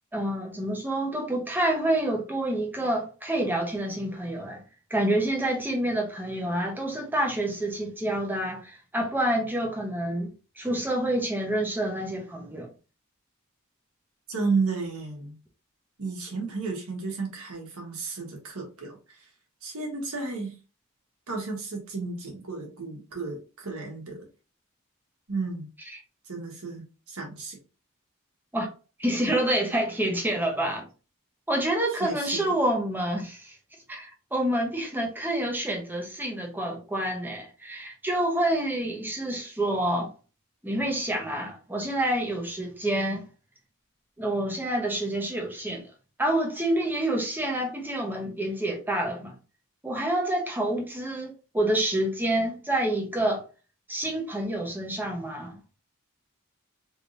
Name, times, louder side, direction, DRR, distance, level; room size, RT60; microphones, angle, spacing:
voice 1, 0.1-4.6 4.9-12.7 28.5-28.7 29.0-30.9 31.5-33.6 33.9-40.1 40.6-43.3 44.2-45.9 46.2-49.3 49.8-53.4 53.9-55.6, right 1 dB, 10° right, 0.9 m, -28 dB
voice 2, 14.3-15.3 16.0-19.2 19.6-20.5 21.3-24.3 25.3-25.7 26.2-27.6 32.0-32.5, right 4 dB, 85° right, 1.4 m, -33 dB
3.4 x 3.2 x 2.6 m
head